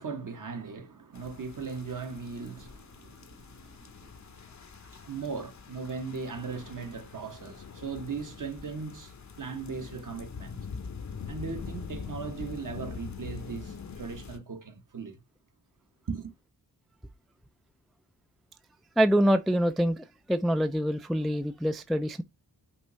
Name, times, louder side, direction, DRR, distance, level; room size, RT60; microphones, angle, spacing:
voice 1, 0.0-4.2 5.0-10.7 11.3-15.2 16.1-16.3, right 5 dB, 50° right, 1.1 m, -38 dB
sound 1, 1.1-14.4, left 5 dB, 45° left, 0.7 m, -43 dB
voice 2, 19.0-22.2, equal, ahead, 0.3 m, -25 dB
5.4 x 2.6 x 3.1 m
cardioid pair, 45°, 41 cm